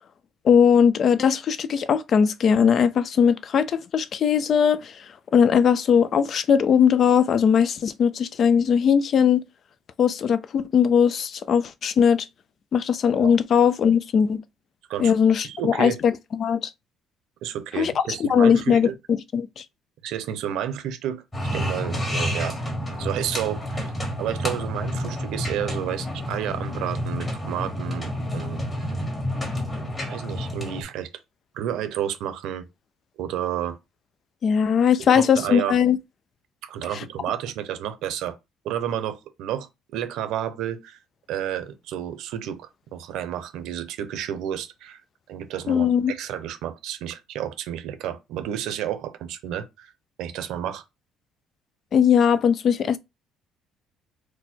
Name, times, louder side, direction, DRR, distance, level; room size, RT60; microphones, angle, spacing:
voice 1, 0.4-4.9 5.3-9.4 10.0-12.3 12.7-14.4 15.0-16.7 17.8-18.9 19.3-19.6 34.4-36.0 45.7-46.1 51.9-53.0, left 7 dB, 40° left, 0.3 m, -19 dB
voice 2, 15.4-16.0 17.4-18.9 20.0-21.2 21.5-22.6 23.0-23.9 24.2-28.9 30.1-31.1 31.5-32.7 33.2-33.8 35.1-35.8 36.6-38.4 38.6-41.0 41.3-45.0 45.3-49.9 50.2-50.8, right 10 dB, 70° right, 0.7 m, -31 dB
sound 1, 21.3-30.8, equal, 15° left, 1.4 m, -29 dB
4.3 x 2.2 x 4.3 m
cardioid pair, 160°, 0 cm